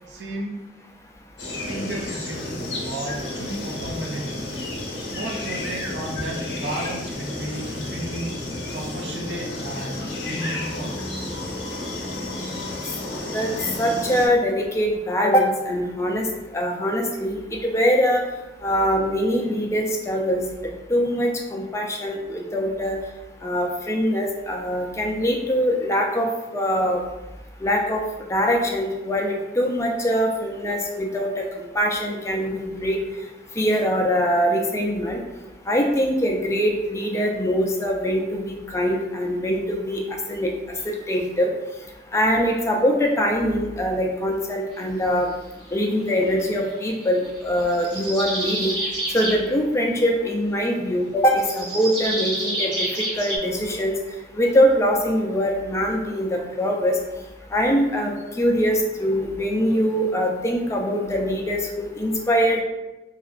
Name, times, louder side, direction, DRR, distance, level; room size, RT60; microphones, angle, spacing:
voice 1, 0.1-0.6 1.7-4.5 5.1-8.4 8.7-11.0, right 1 dB, 70° right, 0 dB, 0.4 m, -33 dB
sound 1, 1.4-14.3, left 1 dB, 70° left, 0.6 m, -31 dB
voice 2, 13.8-16.3 16.5-18.2 18.6-20.4 20.9-23.0 23.4-27.0 27.6-28.0 28.3-31.5 31.7-33.0 33.6-35.2 35.7-40.0 40.3-40.5 40.9-41.5 42.1-45.3 45.7-48.7 49.1-54.0 54.3-57.0 57.5-62.6, equal, 15° left, 0 dB, 0.3 m, -23 dB
sound 2, 46.9-49.4 51.4-53.4, right 1 dB, 25° right, 1.1 m, -28 dB
2.8 x 2.4 x 2.4 m, 1.1 s
head